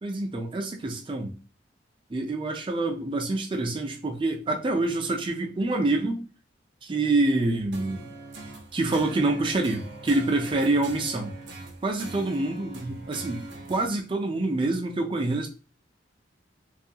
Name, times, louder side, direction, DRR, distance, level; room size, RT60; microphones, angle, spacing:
voice 1, 0.0-1.3 2.1-6.2 6.8-8.1 8.7-11.3 11.8-15.5, right 2 dB, 25° right, 3 dB, 0.4 m, -26 dB
sound 1, 7.7-13.9, right 3 dB, 75° right, 0.5 m, -42 dB
2.6 x 2.3 x 2.7 m, 0.35 s
head